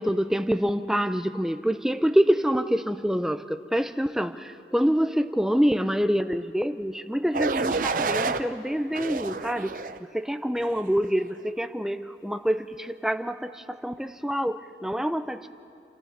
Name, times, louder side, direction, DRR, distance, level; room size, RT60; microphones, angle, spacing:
voice 1, 0.0-9.8 10.1-15.5, equal, 5° right, 10 dB, 0.5 m, -26 dB
sound 1, 7.3-8.4 8.9-10.0 10.6-10.9, right 4 dB, 50° right, 0.6 m, -29 dB
27.5 x 13.0 x 7.2 m, 2.6 s
head